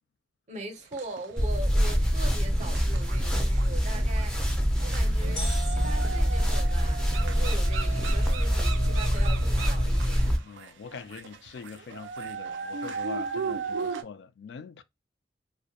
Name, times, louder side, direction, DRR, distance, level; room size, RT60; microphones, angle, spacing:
voice 1, 0.5-10.3, right 2 dB, 40° right, 0.6 m, -41 dB
sound 1, 0.9-1.9 2.3-14.0, right 5 dB, 90° right, 0.3 m, -37 dB
sound 2, 1.4-10.4, equal, 5° left, 0.4 m, -25 dB
sound 3, 5.4-7.3, left 2 dB, 85° left, 0.8 m, -41 dB
voice 2, 10.4-14.8, left 6 dB, 70° left, 0.3 m, -43 dB
2.2 x 2.1 x 2.7 m
head